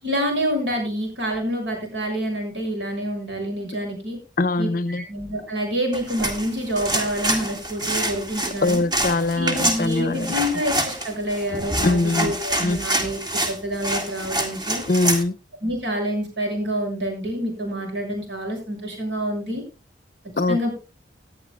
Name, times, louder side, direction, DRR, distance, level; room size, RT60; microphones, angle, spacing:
voice 1, 0.0-4.2 4.6-8.8 9.3-13.2 13.5-14.8 15.6-19.6 20.5-20.7, equal, 70° right, 6.8 m, -27 dB
voice 2, 4.4-5.1 8.6-10.4 11.8-12.3 12.6-12.8 14.9-15.4 20.4-20.7, left 2 dB, 45° left, 0.6 m, -22 dB
sound 1, 5.9-15.2, right 1 dB, 20° right, 1.9 m, -26 dB
19.0 x 10.5 x 2.3 m
head